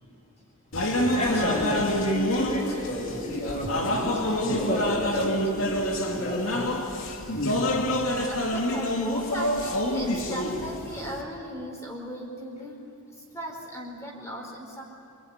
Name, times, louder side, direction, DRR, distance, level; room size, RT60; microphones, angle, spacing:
sound 1, 0.7-11.2, left 1 dB, 65° left, 2.7 m, -27 dB
voice 1, 1.1-6.7, left 1 dB, 35° left, -4 dB, 7.1 m, -31 dB
voice 2, 8.3-12.8 13.2-14.8, equal, 15° left, 0 dB, 4.4 m, -37 dB
27.0 x 22.0 x 9.8 m, 2.7 s
head